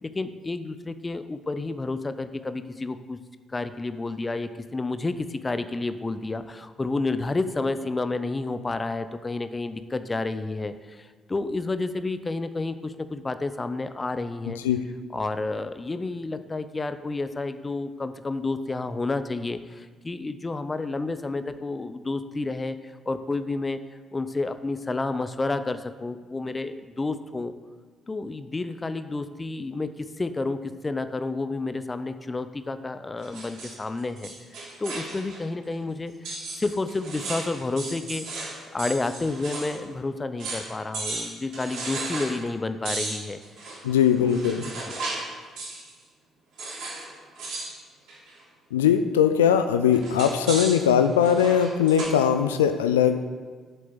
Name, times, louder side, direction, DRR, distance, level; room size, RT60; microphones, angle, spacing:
voice 1, 0.0-3.2 3.5-14.6 15.1-23.8 24.1-27.5 28.1-43.4 44.2-45.0, left 3 dB, 25° left, 11 dB, 0.7 m, -30 dB
sound 1, 33.2-35.4 35.7-35.8 36.2-39.8 40.0-40.1 40.4-40.7 40.9-42.4 42.8-45.3 45.6-45.9 46.6-47.1 47.3-47.7 48.1-48.4 49.9-52.1, right 3 dB, 60° right, 3.3 m, -35 dB
voice 2, 43.8-44.6 48.7-53.3, left 8 dB, 75° left, 9 dB, 0.4 m, -20 dB
7.9 x 7.6 x 8.1 m, 1.5 s
figure-of-eight pair, 45°, 0 cm